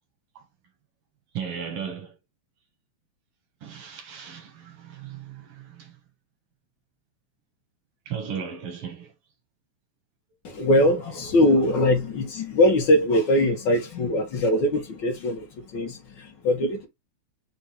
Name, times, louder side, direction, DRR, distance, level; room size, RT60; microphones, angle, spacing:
voice 1, 1.3-2.2 3.6-6.0 8.1-9.1 11.7-11.9, right 7 dB, 75° right, 1.3 m, -36 dB
voice 2, 10.4-15.5 15.7-16.9, left 1 dB, 85° left, 0.9 m, -22 dB
5.2 x 2.2 x 4.2 m
omnidirectional pair, 3.4 m